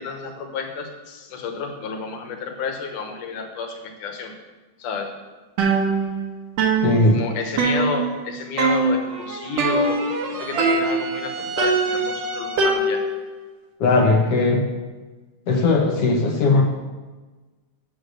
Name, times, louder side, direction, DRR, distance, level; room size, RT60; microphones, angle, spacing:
voice 1, 0.0-4.3 4.8-5.1 7.1-10.0 10.4-13.0, left 5 dB, 85° left, 4 dB, 2.7 m, -31 dB
sound 1, 5.6-6.3 6.6-8.3 8.6-9.1 9.6-10.2 10.6-11.2 11.6-13.3, right 3 dB, 65° right, 2.2 m, -22 dB
voice 2, 6.8-7.2 13.8-14.6 15.5-16.6, left 3 dB, 65° left, 1 dB, 1.7 m, -18 dB
sound 2, 9.0-12.9, right 3 dB, 80° right, 1.0 m, -32 dB
8.2 x 6.6 x 6.4 m, 1.3 s
omnidirectional pair, 3.5 m